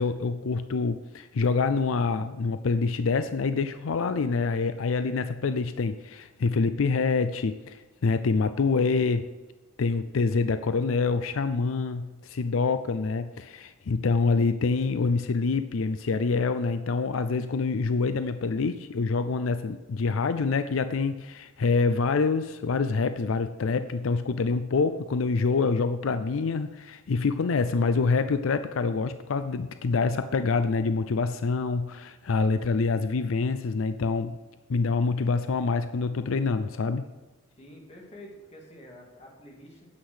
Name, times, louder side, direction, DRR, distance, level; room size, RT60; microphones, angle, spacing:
voice 1, 0.0-9.3 9.8-34.4 34.7-37.1, left 4 dB, 85° left, 11 dB, 0.5 m, -26 dB
voice 2, 37.6-39.9, equal, 30° left, 0 dB, 2.3 m, -48 dB
9.7 x 8.1 x 6.3 m, 1.2 s
head